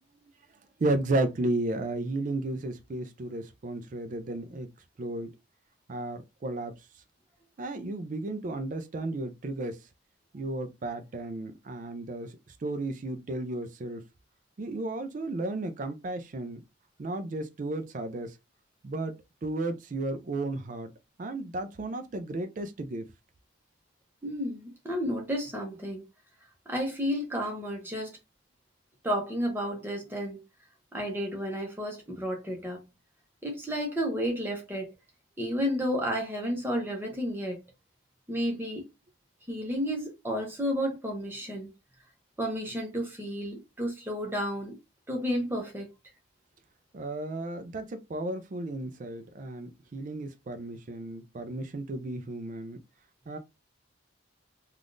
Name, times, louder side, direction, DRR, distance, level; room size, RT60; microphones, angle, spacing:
voice 1, 0.8-4.7 5.0-5.3 5.9-6.7 7.6-9.8 10.3-14.0 14.6-16.6 17.0-18.3 18.8-19.1 19.4-20.9 21.2-23.1 46.9-52.8 53.3-53.4, right 2 dB, 40° right, 0.4 m, -33 dB
voice 2, 24.2-26.0 26.7-28.2 29.0-30.4 30.9-32.8 33.4-34.9 35.4-37.6 38.3-38.8 39.5-41.7 42.4-44.8 45.1-45.9, equal, 10° right, 0.8 m, -31 dB
3.4 x 2.4 x 2.5 m
head